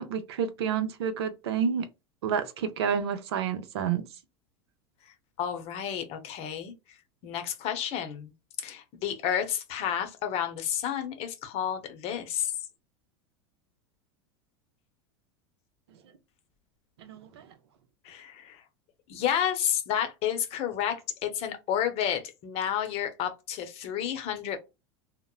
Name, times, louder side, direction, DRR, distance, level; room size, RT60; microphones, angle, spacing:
voice 1, 0.0-1.9 2.2-4.0 17.0-17.5, right 7 dB, 80° right, 0.6 m, -29 dB
voice 2, 5.4-7.0 7.2-8.3 8.6-12.5 18.0-18.6 19.1-24.6, left 9 dB, 50° left, 0.7 m, -31 dB
2.9 x 2.0 x 2.3 m
hypercardioid pair, 100°, 14 cm